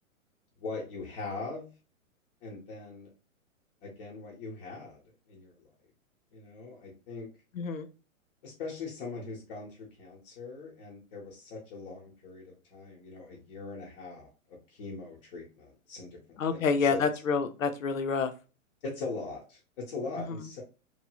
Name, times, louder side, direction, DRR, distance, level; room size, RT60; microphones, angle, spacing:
voice 1, 0.6-1.7 2.4-3.1 3.8-5.7 6.3-7.3 8.4-17.0 18.8-20.6, left 3 dB, 40° left, -3 dB, 1.1 m, -41 dB
voice 2, 16.4-18.3, left 5 dB, 70° left, 8 dB, 0.7 m, -28 dB
3.1 x 2.6 x 2.3 m, 0.31 s
figure-of-eight pair, 115°, 41 cm